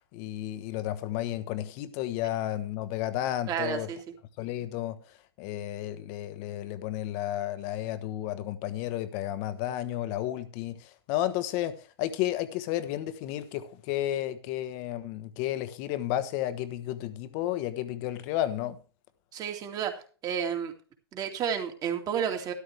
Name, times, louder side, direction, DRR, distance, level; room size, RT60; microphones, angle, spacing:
voice 1, 0.1-3.9 4.4-5.0 5.4-18.8, left 13 dB, 40° left, 1.2 m, -32 dB
voice 2, 3.5-4.0 19.3-20.7 21.1-22.5, right 8 dB, 25° right, 2.3 m, -31 dB
13.0 x 12.0 x 3.4 m
hypercardioid pair, 120°, 14 cm